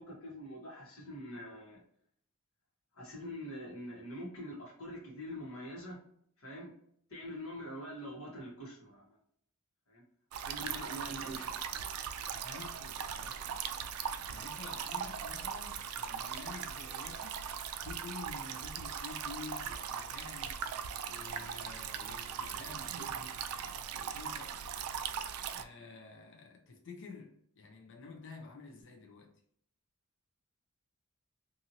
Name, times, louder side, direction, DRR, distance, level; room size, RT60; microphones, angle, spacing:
voice 1, 0.0-1.8 2.9-6.0 6.4-6.7 7.1-9.2 9.9-10.0 10.3-12.3, equal, 75° left, 1.3 m, -45 dB
sound 1, 10.3-25.6, right 7 dB, 80° right, 0.3 m, -39 dB
voice 2, 10.6-11.4 12.3-13.6 14.3-17.4 17.8-20.6 21.1-23.4 23.9-24.7 25.5-29.4, left 4 dB, 60° left, 0.6 m, -50 dB
2.8 x 2.6 x 2.6 m
head